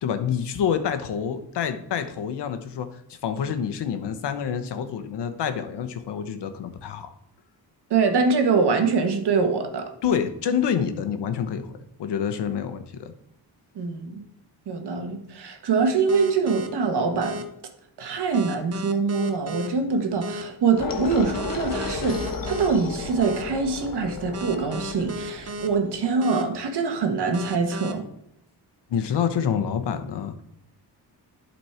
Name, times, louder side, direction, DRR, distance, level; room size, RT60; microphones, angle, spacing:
voice 1, 0.0-7.1 10.0-11.7 12.0-13.1 28.9-30.4, left 7 dB, 85° left, 9 dB, 1.0 m, -27 dB
voice 2, 7.9-9.9 13.7-14.2 14.7-17.4 18.0-28.0, right 4 dB, 75° right, 5 dB, 1.5 m, -24 dB
sound 1, 16.1-16.7 17.2-17.4 18.3-19.7 20.2-20.4 21.3-22.7 23.2-23.4 24.3-25.7 26.2-26.4 27.3-27.9, right 1 dB, 40° right, 0.8 m, -34 dB
sound 2, 20.8-25.9, left 5 dB, 55° left, 1.2 m, -33 dB
11.0 x 4.3 x 4.4 m, 0.78 s
cardioid pair, 110°, 40 cm